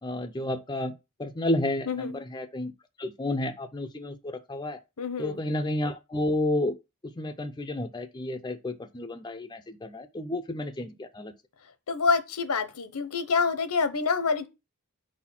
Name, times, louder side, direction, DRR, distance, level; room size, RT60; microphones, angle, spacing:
voice 1, 0.0-0.9 1.2-2.7 3.0-4.8 5.2-6.8 7.0-11.3, left 1 dB, 20° left, 0.5 m, -31 dB
voice 2, 5.0-5.4 11.9-14.5, left 5 dB, 75° left, 0.9 m, -27 dB
5.1 x 4.1 x 5.8 m
head